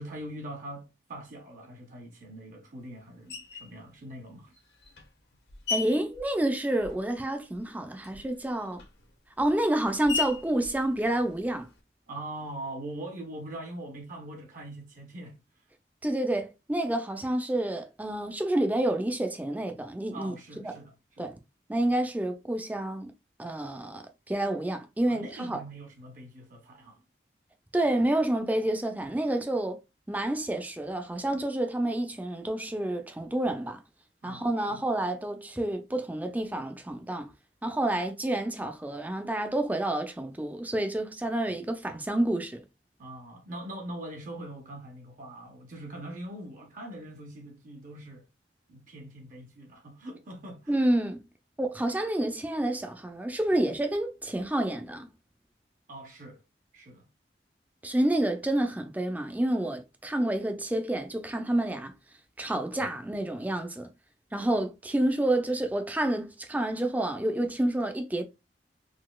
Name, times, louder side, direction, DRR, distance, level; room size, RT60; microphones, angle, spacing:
voice 1, 0.0-4.5 12.1-15.4 20.1-21.3 25.1-27.0 34.2-34.8 43.0-48.2 48.7-50.8 55.9-56.4 56.7-57.1 62.8-62.9, right 1 dB, 45° right, 0.6 m, -42 dB
Screech, 3.3-3.8 4.5-7.2 7.5-11.8, left 6 dB, 70° left, 0.9 m, -38 dB
voice 2, 5.7-8.8 9.4-11.7 16.0-20.7 21.2-21.4 21.7-23.1 23.4-25.6 27.7-29.8 30.1-33.8 34.2-37.3 37.6-42.6 50.7-51.3 51.6-55.1 57.8-61.9 62.4-63.9 64.3-68.2, right 1 dB, 10° right, 0.4 m, -29 dB
4.0 x 2.7 x 2.3 m
head